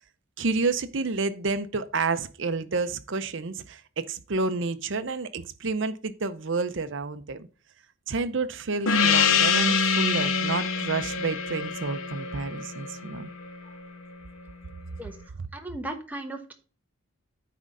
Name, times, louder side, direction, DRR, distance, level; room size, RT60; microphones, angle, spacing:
voice 1, 0.4-7.5 8.1-13.3, right 3 dB, 60° right, 0.7 m, -30 dB
Gong, 8.9-13.9, left 5 dB, 75° left, 0.8 m, -25 dB
voice 2, 15.5-16.5, right 1 dB, 5° right, 1.0 m, -36 dB
9.4 x 3.7 x 5.3 m
head